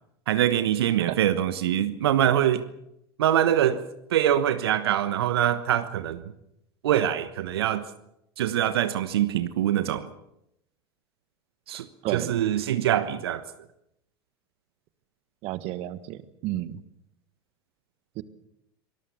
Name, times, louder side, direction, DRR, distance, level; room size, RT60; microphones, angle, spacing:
voice 1, 0.3-2.6 3.2-3.8 4.1-6.2 6.8-7.8 8.4-10.1 11.7-11.9 12.1-13.4, right 11 dB, 70° right, 1.2 m, -24 dB
voice 2, 12.0-12.4 15.4-16.8 18.2-18.3, right 14 dB, 50° right, 1.4 m, -32 dB
25.0 x 19.0 x 7.0 m
figure-of-eight pair, 80°, 13 cm